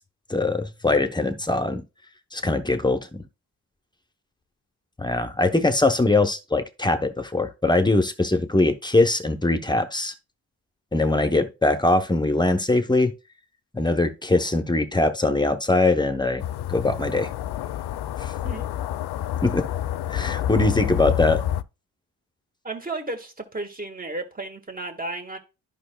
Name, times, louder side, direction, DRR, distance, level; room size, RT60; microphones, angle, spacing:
voice 1, 0.3-1.8 2.3-3.2 5.0-10.1 10.9-13.1 13.7-16.4 16.7-17.3 18.2-18.3 19.4-19.6 20.1-21.4, left 2 dB, 10° left, 0.8 m, -22 dB
sound 1, 16.4-21.6, left 11 dB, 70° left, 0.5 m, -28 dB
voice 2, 22.6-25.4, right 2 dB, 20° right, 1.6 m, -33 dB
11.0 x 5.6 x 2.3 m
cardioid pair, 85°, 40 cm